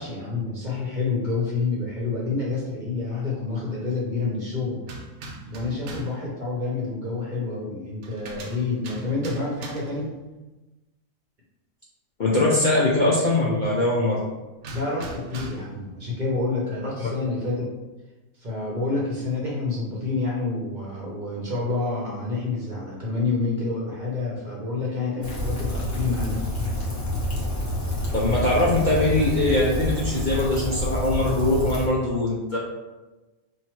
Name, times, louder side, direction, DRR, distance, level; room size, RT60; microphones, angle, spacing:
voice 1, 0.0-4.8 5.5-10.1 14.7-17.7 18.4-26.4, left 3 dB, 40° right, -5 dB, 0.9 m, -28 dB
sound 1, 4.8-6.2 8.0-10.1 14.6-15.8, right 3 dB, 75° right, 1.0 m, -40 dB
voice 2, 12.2-14.2 28.1-32.6, left 2 dB, 50° left, -6 dB, 0.6 m, -22 dB
Rain, 25.2-31.9, equal, 15° left, 0.7 m, -28 dB
3.0 x 2.7 x 4.4 m, 1.1 s
omnidirectional pair, 1.4 m